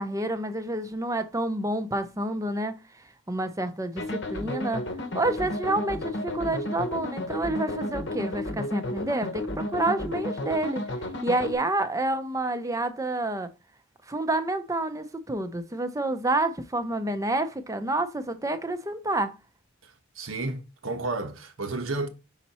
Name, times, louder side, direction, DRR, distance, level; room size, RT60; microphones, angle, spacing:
voice 1, 0.0-2.8 3.3-4.9 5.1-10.8 11.2-13.5 14.1-19.3, right 2 dB, 15° right, 0.6 m, -28 dB
sound 1, 4.0-11.5, left 1 dB, 60° left, 0.9 m, -32 dB
voice 2, 20.2-22.1, right 2 dB, 80° right, 1.0 m, -31 dB
5.7 x 4.2 x 4.2 m
head